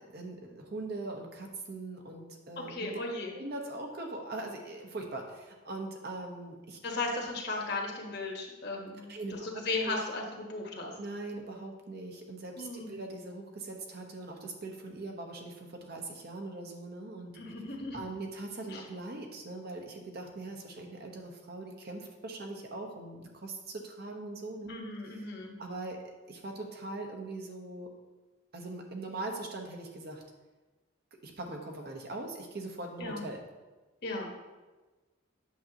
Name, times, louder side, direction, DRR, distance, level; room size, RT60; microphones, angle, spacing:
voice 1, 0.1-2.9 3.3-6.8 9.0-9.5 9.8-10.0 11.0-17.3 17.9-24.7 25.0-25.3 25.6-27.9 28.5-30.2 31.2-33.4, right 2 dB, 55° right, 2 dB, 1.0 m, -41 dB
voice 2, 2.7-3.3 6.8-10.9 12.6-13.0 17.3-18.0 18.7-18.8 24.7-25.6 33.0-33.2 34.0-34.3, left 3 dB, 60° left, 0 dB, 1.3 m, -36 dB
8.5 x 6.5 x 2.9 m, 1.2 s
head